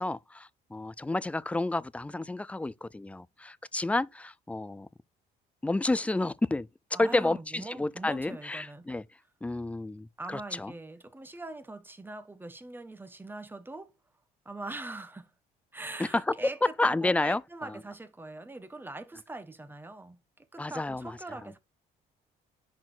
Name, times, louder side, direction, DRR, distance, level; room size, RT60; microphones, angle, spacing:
voice 1, 0.0-4.9 5.6-6.7 7.0-9.0 9.4-10.7 16.0-16.1 16.8-17.7 20.6-21.1, left 2 dB, 10° left, 0.4 m, -30 dB
voice 2, 6.9-8.9 10.2-13.9 14.4-15.3 15.7-21.6, right 2 dB, 10° right, 1.2 m, -42 dB
10.5 x 4.3 x 3.9 m
cardioid pair, 110°, 17 cm